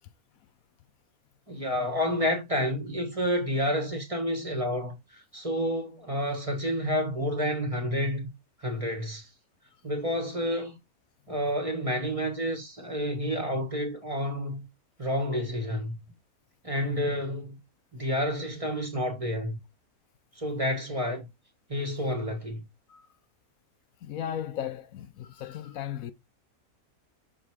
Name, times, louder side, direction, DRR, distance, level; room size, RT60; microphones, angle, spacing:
voice 1, 1.5-8.3 8.6-9.3 9.8-10.8 11.3-14.6 15.0-16.0 16.6-17.6 17.9-19.6 20.3-21.3 21.7-22.6, equal, 25° right, 1.5 m, -29 dB
voice 2, 24.0-26.1, left 10 dB, 75° left, 1.1 m, -36 dB
6.3 x 4.4 x 4.8 m
omnidirectional pair, 1.5 m